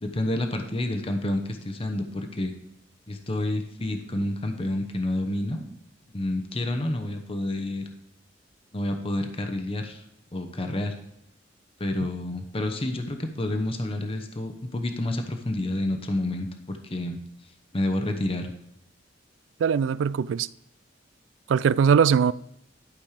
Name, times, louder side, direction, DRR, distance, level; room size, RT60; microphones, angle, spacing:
voice 1, 0.0-2.5 3.1-5.7 6.1-7.9 8.7-10.0 10.3-11.0 11.8-17.2 17.7-18.5, left 1 dB, 30° left, 0.9 m, -29 dB
voice 2, 19.6-20.5 21.5-22.3, right 7 dB, 75° right, 0.3 m, -21 dB
11.5 x 5.3 x 4.9 m
head